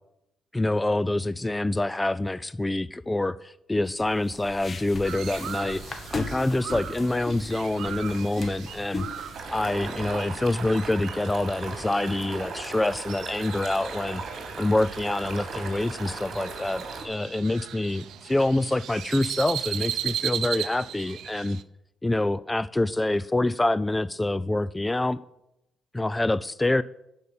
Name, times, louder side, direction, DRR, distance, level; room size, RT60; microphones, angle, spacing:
voice 1, 0.5-5.8 6.1-9.1 9.5-14.2 14.5-21.6 22.0-25.2 25.9-26.8, left 2 dB, 15° left, 17 dB, 0.3 m, -26 dB
sound 1, 3.9-9.4, left 3 dB, 35° left, 1.6 m, -38 dB
Crow, 5.0-21.6, right 10 dB, 75° right, 0.6 m, -38 dB
sound 2, 9.3-17.0, right 4 dB, 55° right, 3.1 m, -37 dB
12.0 x 5.4 x 8.7 m, 0.83 s
cardioid pair, 90°, 0 cm